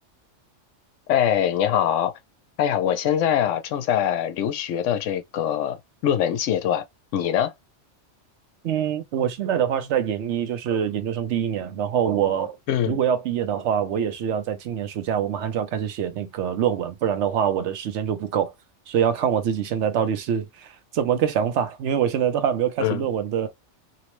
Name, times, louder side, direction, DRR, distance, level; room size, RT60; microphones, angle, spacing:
voice 1, 1.1-2.1 2.6-6.8 7.1-7.5 12.7-13.0 22.8-23.1, left 10 dB, 90° left, 0.9 m, -23 dB
voice 2, 8.6-12.6 12.9-18.5 18.9-23.5, right 9 dB, 75° right, 0.9 m, -24 dB
2.9 x 2.0 x 2.9 m
omnidirectional pair, 1.2 m